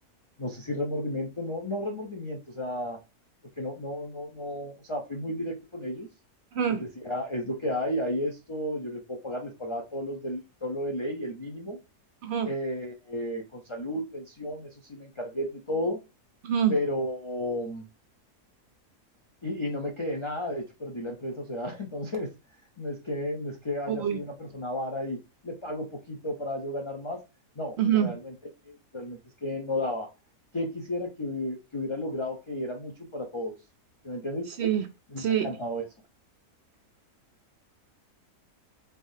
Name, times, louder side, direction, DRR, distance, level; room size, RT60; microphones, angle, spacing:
voice 1, 0.4-3.0 3.6-6.1 6.7-11.8 12.4-16.0 16.7-17.8 19.4-22.3 22.8-25.2 25.4-27.2 27.6-28.3 28.6-30.1 30.5-33.5 34.0-34.5 35.1-35.9, left 1 dB, 45° left, 0.3 m, -33 dB
voice 2, 23.9-24.2 27.8-28.1 34.6-34.8 35.2-35.5, right 9 dB, 75° right, 0.6 m, -25 dB
3.9 x 3.5 x 2.7 m
omnidirectional pair, 1.6 m